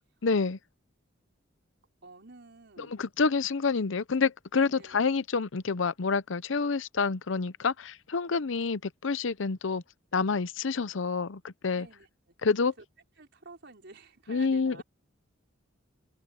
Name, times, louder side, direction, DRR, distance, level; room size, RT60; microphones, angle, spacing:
voice 1, 0.2-0.6 2.8-9.8 10.1-11.9 12.4-12.7 14.3-14.8, left 4 dB, 70° left, 0.7 m, -28 dB
voice 2, 2.0-2.9 4.6-5.0 11.7-12.3 12.6-12.8 13.2-14.8, right 3 dB, 60° right, 5.0 m, -51 dB
open air
head